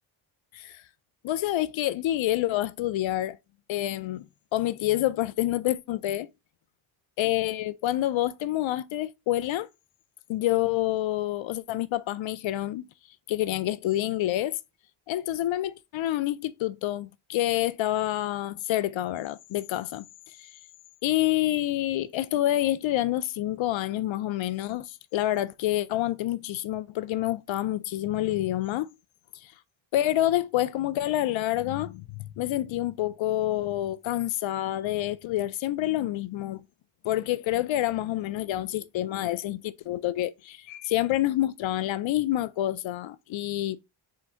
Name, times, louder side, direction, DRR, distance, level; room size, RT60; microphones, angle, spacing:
voice 1, 1.2-3.4 3.7-4.3 4.5-6.3 7.2-9.7 10.3-12.8 13.3-14.6 15.1-20.0 20.4-20.5 21.0-28.9 29.4-29.5 29.9-36.6 37.0-43.8, left 14 dB, 70° left, 0.5 m, -28 dB
3.7 x 2.6 x 4.3 m
cardioid pair, 100°, 48 cm